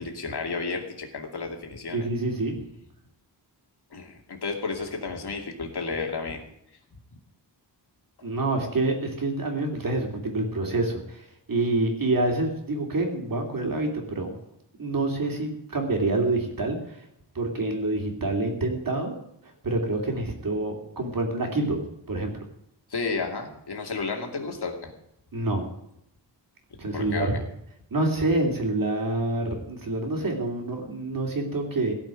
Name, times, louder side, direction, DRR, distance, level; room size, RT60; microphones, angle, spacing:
voice 1, 0.0-2.1 3.9-6.4 22.9-24.9 26.9-27.3, left 4 dB, 65° left, 2 dB, 2.5 m, -32 dB
voice 2, 1.9-2.6 8.2-11.2 11.5-14.4 14.8-16.8 17.3-19.1 19.6-21.8 22.1-22.4 25.3-25.6 26.8-27.4 27.9-31.9, right 2 dB, 50° right, 2 dB, 3.0 m, -27 dB
17.0 x 5.8 x 9.2 m, 0.79 s
wide cardioid pair, 150°, 43 cm